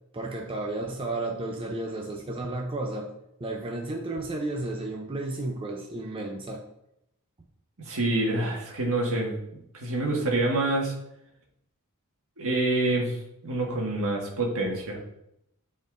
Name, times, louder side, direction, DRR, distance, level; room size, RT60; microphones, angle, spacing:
voice 1, 0.1-3.1 3.4-6.6, right 2 dB, 25° right, 1 dB, 0.6 m, -32 dB
voice 2, 7.9-9.3 9.8-10.9 12.4-13.2 13.4-15.0, right 2 dB, 70° right, -1 dB, 1.7 m, -26 dB
11.0 x 4.3 x 2.6 m, 0.80 s
head